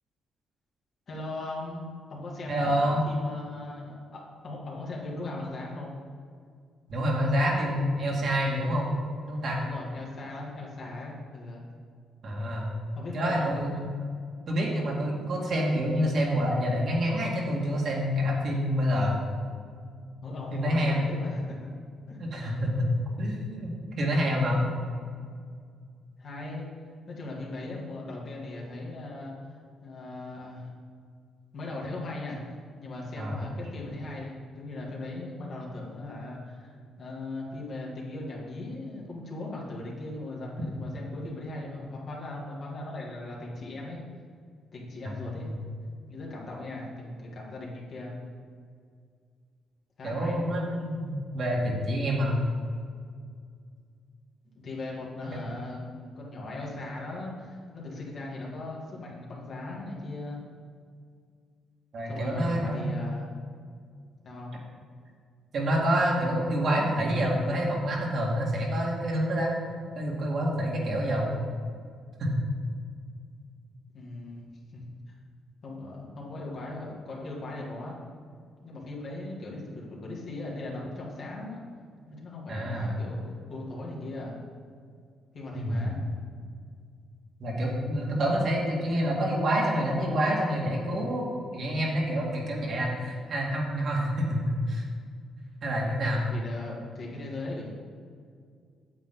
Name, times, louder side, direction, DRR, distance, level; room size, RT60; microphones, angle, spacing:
voice 1, 1.1-5.9 9.6-11.6 12.9-13.5 20.2-21.7 22.1-22.2 22.4-22.5 26.2-26.7 27.1-29.3 29.8-30.7 31.5-44.0 44.7-45.5 46.1-48.1 50.0-50.4 54.6-60.4 62.1-63.3 64.2-64.6 73.9-74.5 74.7-74.8 75.6-78.0 78.6-81.6 82.1-84.4 85.3-86.0 96.3-97.7, left 2 dB, 55° left, -4 dB, 2.4 m, -38 dB
voice 2, 2.5-3.0 6.9-8.9 9.3-9.6 12.2-12.7 13.1-13.9 14.5-19.2 20.5-21.0 22.2-22.9 23.2-23.7 24.0-24.7 33.2-33.4 45.0-45.1 45.4-45.6 50.0-52.4 55.3-55.4 61.9-62.9 65.5-69.5 69.9-71.3 72.2-72.3 82.5-82.9 85.5-85.9 87.4-91.3 91.5-94.8 95.6-96.3, equal, 55° right, -2 dB, 2.2 m, -27 dB
8.9 x 7.5 x 3.9 m, 2.1 s
cardioid pair, 90°, 0 cm